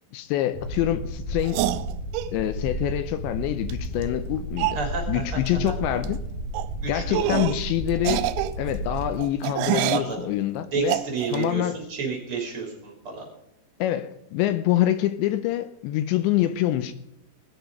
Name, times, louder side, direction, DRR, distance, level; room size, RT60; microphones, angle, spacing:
voice 1, 0.1-1.6 2.3-4.8 5.1-6.2 6.9-11.0 11.3-11.8 13.8-16.9, left 13 dB, 80° left, 2.8 m, -26 dB
sound 1, 0.5-9.2, right 1 dB, 60° left, 3.7 m, -32 dB
sound 2, 1.4-2.3 3.7-3.8 4.0-4.1 4.6-4.8 5.5-5.7 6.0-6.1 6.5-6.7 7.1-7.6 8.0-10.1 10.9-11.4, right 14 dB, 85° right, 3.0 m, -27 dB
voice 2, 4.7-5.4 5.7-5.8 6.8-7.5 9.9-10.2 10.7-13.3, right 5 dB, 30° right, 3.5 m, -30 dB
19.5 x 6.9 x 5.2 m
omnidirectional pair, 5.4 m